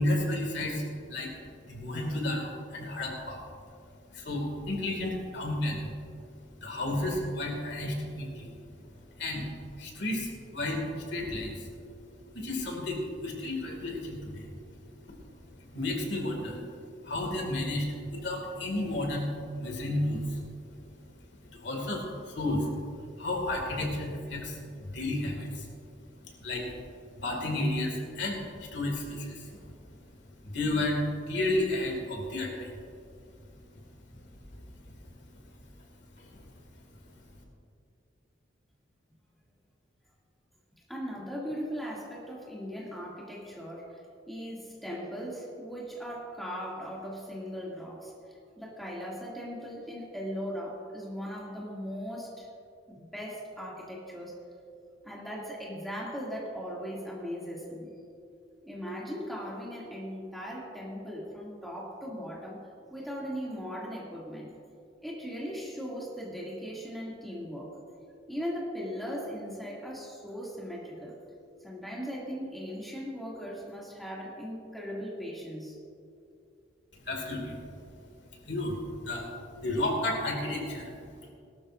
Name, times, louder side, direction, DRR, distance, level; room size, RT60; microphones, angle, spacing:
voice 1, 0.0-3.4 4.1-6.0 6.4-9.5 9.7-12.0 12.3-14.5 15.0-15.2 15.6-16.6 17.0-20.5 20.7-21.0 21.3-25.7 26.2-26.8 27.2-33.0 33.5-33.8 34.5-34.7 35.0-35.1 35.6-35.9 36.2-36.6 37.1-37.4 76.9-78.0 78.3-79.3 79.5-81.3, left 1 dB, 65° left, 1 dB, 2.3 m, -33 dB
voice 2, 40.9-44.0 44.3-48.1 48.6-52.5 52.9-54.3 55.0-57.9 58.6-62.6 62.9-64.5 65.0-67.7 68.3-71.2 71.6-75.8, equal, ahead, -6 dB, 2.5 m, -38 dB
19.0 x 12.5 x 2.6 m, 2.5 s
head